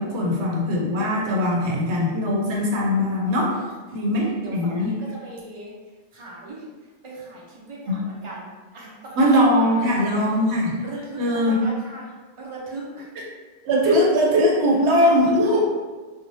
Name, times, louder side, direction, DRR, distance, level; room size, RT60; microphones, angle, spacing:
voice 1, 0.0-3.6 3.9-4.9 7.9-8.0 9.2-10.8 11.2-11.6 13.6-15.6, equal, 75° right, -2 dB, 1.0 m, -20 dB
voice 2, 4.1-5.7 6.1-6.6 7.0-8.5 8.7-9.4 9.7-10.4 10.8-13.1 14.9-15.6, right 2 dB, 35° right, -4 dB, 0.6 m, -38 dB
2.6 x 2.3 x 3.1 m, 1.3 s
omnidirectional pair, 1.1 m